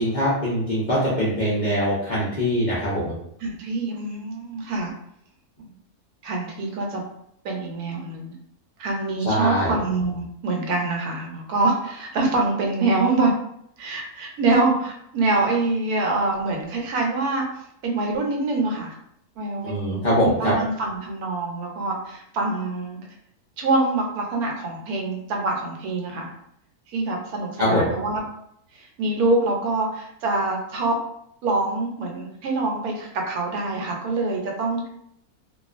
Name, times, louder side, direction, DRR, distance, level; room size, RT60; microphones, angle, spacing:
voice 1, 0.0-3.1 9.2-9.8 19.6-20.5 27.6-27.9, equal, 65° left, -8 dB, 0.4 m, -22 dB
voice 2, 3.4-4.9 5.6-5.7 6.2-7.0 7.4-8.3 8.8-13.3 13.8-17.5 17.8-18.9 19.4-23.0 23.6-26.3 26.9-28.2 28.7-31.0 31.4-34.9, right 3 dB, 80° right, 1 dB, 1.1 m, -25 dB
2.4 x 2.2 x 2.4 m, 0.73 s
omnidirectional pair, 1.6 m